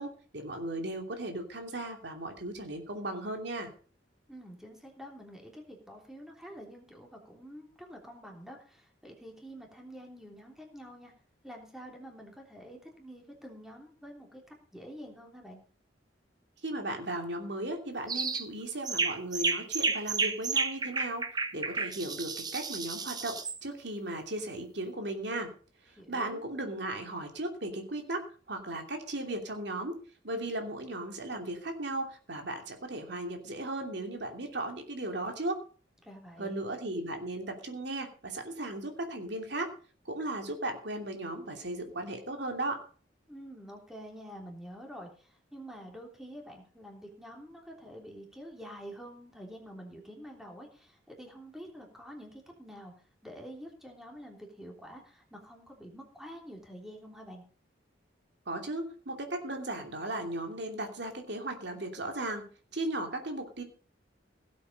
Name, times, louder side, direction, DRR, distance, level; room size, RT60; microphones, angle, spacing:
voice 1, 0.0-3.7 16.6-21.2 21.5-25.5 26.1-30.0 30.2-35.6 36.4-39.7 40.0-42.8 58.5-63.6, right 1 dB, 65° right, 4 dB, 2.9 m, -36 dB
voice 2, 4.3-11.1 11.4-15.6 26.0-26.4 36.0-36.6 43.3-57.4, equal, 5° right, 1 dB, 3.3 m, -47 dB
sound 1, 18.1-18.5 18.9-23.6, right 4 dB, 20° right, 1.0 m, -32 dB
17.5 x 8.3 x 5.2 m, 0.39 s
head